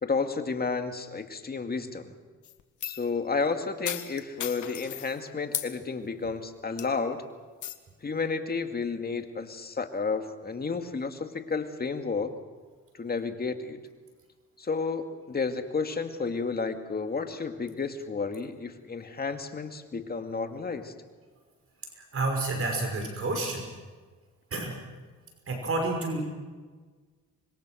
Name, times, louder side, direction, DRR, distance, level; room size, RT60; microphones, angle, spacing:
voice 1, 0.0-2.1 2.8-7.2 8.0-12.3 12.9-13.8 14.6-20.9, left 4 dB, 30° left, 6 dB, 2.2 m, -31 dB
sound 1, 2.4-3.1 3.9-5.1 5.5-5.7 6.2-6.4 6.8-7.1 7.6-7.8, left 12 dB, 75° left, 1.6 m, -36 dB
voice 2, 21.9-23.7 24.5-24.8 25.5-26.2, right 2 dB, 50° right, 3 dB, 5.6 m, -29 dB
25.5 x 22.0 x 6.4 m, 1.4 s
cardioid pair, 90°, 30 cm